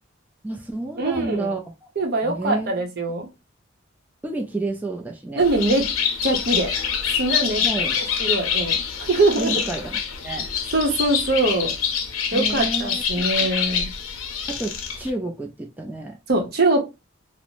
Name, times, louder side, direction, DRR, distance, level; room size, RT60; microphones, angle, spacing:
voice 1, 0.4-1.9 2.2-2.8 4.2-5.4 7.6-8.0 9.3-10.5 12.3-13.5 14.5-16.2, right 2 dB, 10° right, 1 dB, 0.3 m, -30 dB
voice 2, 1.0-1.5 2.0-3.3 5.4-5.8 6.2-6.7 7.2-7.6 8.2-9.6 10.7-11.7 12.3-13.9 16.3-16.8, right 2 dB, 50° right, 3 dB, 0.7 m, -22 dB
Bird, 5.4-15.1, left 7 dB, 85° left, 0.5 m, -26 dB
2.6 x 2.0 x 2.9 m, 0.24 s
head